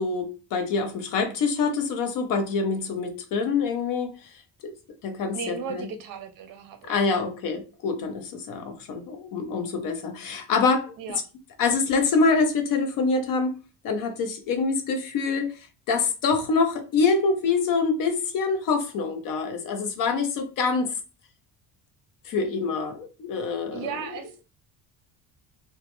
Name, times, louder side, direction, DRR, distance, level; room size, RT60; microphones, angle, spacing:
voice 1, 0.0-4.3 4.6-4.7 5.0-5.9 6.8-10.9 11.6-13.6 13.8-20.9 22.2-24.4, left 4 dB, 55° left, 0.6 m, -25 dB
voice 2, 5.3-7.2 11.0-11.2 23.7-24.4, right 6 dB, 60° right, 0.6 m, -36 dB
2.1 x 2.0 x 2.9 m
cardioid pair, 165°, 40 cm